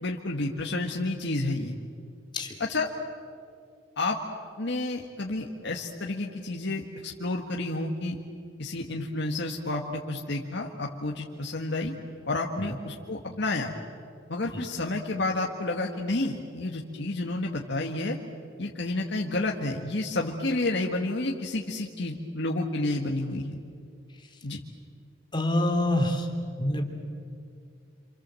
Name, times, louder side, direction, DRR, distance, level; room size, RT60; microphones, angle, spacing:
voice 1, 0.0-1.7 2.6-2.9 4.0-4.2 4.6-8.2 8.6-11.9 12.3-13.7 14.3-18.2 18.6-23.6 24.4-24.6, left 2 dB, 65° left, 0 dB, 1.8 m, -30 dB
voice 2, 25.3-26.3 26.6-26.8, left 1 dB, 25° left, 3 dB, 3.3 m, -26 dB
27.5 x 27.0 x 7.7 m, 2.3 s
head